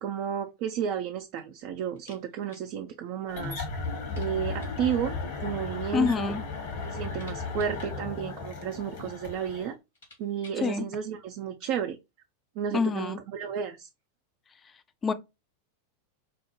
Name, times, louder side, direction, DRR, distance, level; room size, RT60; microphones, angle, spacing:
voice 1, 0.0-3.6 4.2-5.2 5.4-6.3 6.8-9.7 10.2-12.0 12.6-13.9, right 8 dB, 45° right, 0.4 m, -32 dB
sound 1, 1.9-2.7 3.0-3.1 3.4-3.5 4.0-4.9 5.8-6.4 6.7-8.7 9.4-9.5 9.8-10.7, left 2 dB, 70° left, 1.7 m, -56 dB
sound 2, 3.3-9.7, left 4 dB, 55° left, 1.2 m, -35 dB
voice 2, 5.9-6.4 10.6-10.9 12.7-13.2 15.0-15.1, left 5 dB, 20° left, 0.4 m, -26 dB
4.5 x 2.0 x 3.0 m
figure-of-eight pair, 90°, 0 cm